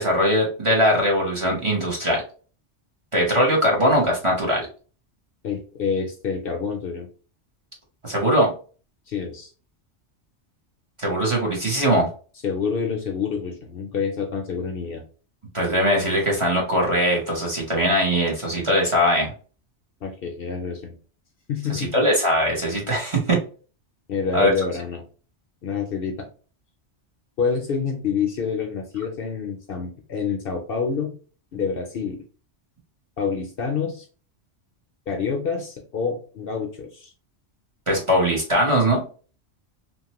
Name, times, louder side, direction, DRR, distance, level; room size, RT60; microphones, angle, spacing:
voice 1, 0.0-2.2 3.1-4.7 8.0-8.5 11.0-12.1 15.5-19.3 21.7-23.4 24.3-24.5 37.9-39.0, equal, 30° right, -3 dB, 0.8 m, -21 dB
voice 2, 5.4-7.1 9.1-9.5 12.4-15.0 20.0-20.9 21.5-22.1 24.1-25.0 25.6-26.3 27.4-31.1 31.5-32.2 33.2-34.1 35.1-37.1, left 6 dB, 60° left, 3 dB, 0.7 m, -27 dB
3.0 x 2.1 x 2.9 m, 0.38 s
omnidirectional pair, 1.2 m